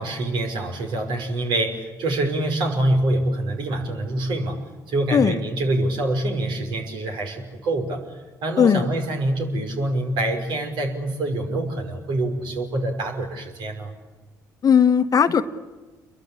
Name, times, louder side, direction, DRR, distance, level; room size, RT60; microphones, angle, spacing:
voice 1, 0.0-4.6 4.9-8.0 8.4-13.9, right 1 dB, 60° right, 3 dB, 5.6 m, -25 dB
voice 2, 14.6-15.4, left 7 dB, 40° left, 11 dB, 1.3 m, -17 dB
29.5 x 22.5 x 8.6 m, 1.2 s
hypercardioid pair, 50°, 9 cm